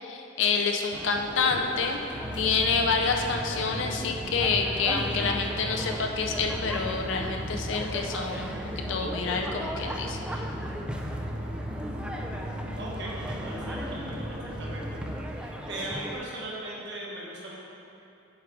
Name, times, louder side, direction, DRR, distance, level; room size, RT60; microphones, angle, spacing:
voice 1, 0.0-2.0 2.4-8.5 8.9-10.4, left 5 dB, 60° left, 3 dB, 0.5 m, -28 dB
sound 1, 0.9-16.2, equal, 5° right, 0.3 m, -38 dB
sound 2, 2.1-15.2, equal, 35° right, 1.0 m, -36 dB
voice 2, 12.8-15.0 15.3-17.6, right 1 dB, 60° right, -5 dB, 1.4 m, -38 dB
7.3 x 4.7 x 4.6 m, 2.7 s
head